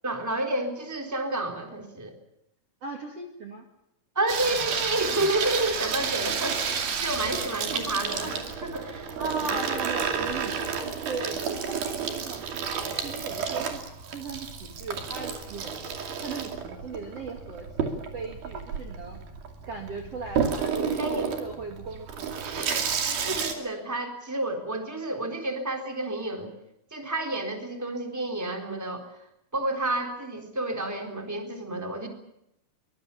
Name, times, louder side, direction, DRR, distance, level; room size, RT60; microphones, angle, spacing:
voice 1, 0.0-2.1 4.1-9.2 9.5-9.6 21.0-21.3 22.5-22.7 23.0-26.5 26.9-29.1 29.5-32.1, right 1 dB, 5° right, 3 dB, 3.4 m, -30 dB
voice 2, 2.8-3.6 9.2-13.8 14.1-15.8 16.2-19.2 19.7-22.3 22.5-22.8, right 4 dB, 45° right, 3 dB, 2.9 m, -38 dB
Water tap faucet / Sink (filling or washing), 4.3-23.5, right 6 dB, 70° right, 4.3 m, -31 dB
23.5 x 22.0 x 7.1 m, 0.79 s
omnidirectional pair, 4.4 m